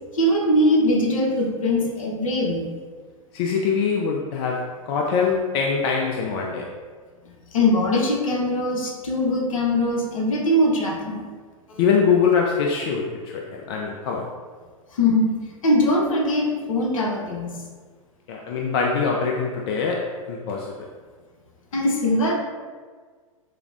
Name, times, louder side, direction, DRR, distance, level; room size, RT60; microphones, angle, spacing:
voice 1, 0.1-2.7 7.5-11.3 11.7-11.8 14.9-15.3 15.6-17.6 21.7-22.3, left 1 dB, 70° left, 0 dB, 0.8 m, -21 dB
voice 2, 3.3-6.7 11.8-14.3 18.3-20.9, left 5 dB, 45° left, 0 dB, 0.4 m, -23 dB
4.8 x 2.0 x 2.5 m, 1.5 s
figure-of-eight pair, 105°, 18 cm